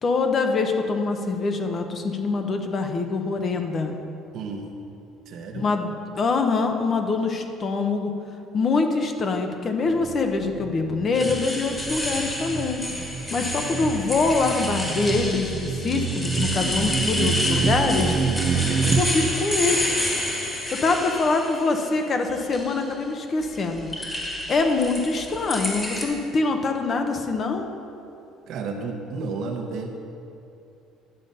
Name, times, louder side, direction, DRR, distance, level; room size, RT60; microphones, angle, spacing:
voice 1, 0.0-4.0 5.6-8.1 8.5-12.8 13.3-18.2 18.9-19.9 20.7-23.9 24.5-27.7, left 3 dB, 30° left, 5 dB, 0.8 m, -24 dB
voice 2, 4.3-4.7 5.3-5.7 13.6-14.0 18.7-19.3 28.5-29.9, right 4 dB, 55° right, 2 dB, 1.2 m, -33 dB
sound 1, 9.9-19.0, right 5 dB, 30° right, 0.6 m, -28 dB
sound 2, 11.1-21.8 22.3-22.9 23.4-26.0, left 1 dB, 15° left, 1.6 m, -29 dB
11.0 x 6.9 x 5.5 m, 2.8 s
cardioid pair, 150°, 0 cm